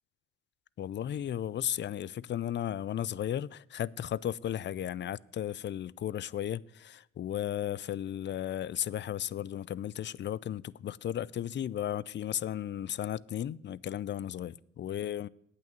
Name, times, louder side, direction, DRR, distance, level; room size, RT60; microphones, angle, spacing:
voice 1, 0.8-15.3, left 10 dB, 40° left, 0.4 m, -35 dB
9.2 x 8.3 x 7.5 m
cardioid pair, 90°, 30 cm